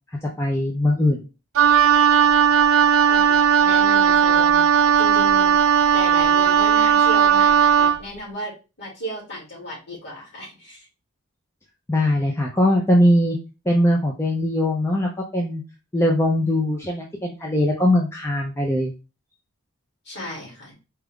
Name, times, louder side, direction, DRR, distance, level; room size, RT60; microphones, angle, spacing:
voice 1, 0.4-1.2 11.9-13.4 13.7-15.6 15.9-18.9, left 1 dB, 10° left, -1 dB, 0.5 m, -20 dB
Wind instrument woodwind instrument, 1.6-8.0, right 8 dB, 75° right, 0.4 m, -16 dB
voice 2, 3.0-4.7 5.0-5.5 5.9-8.5 8.8-10.9 20.0-20.7, equal, 55° left, -4 dB, 2.4 m, -34 dB
4.4 x 2.4 x 3.5 m, 0.30 s
head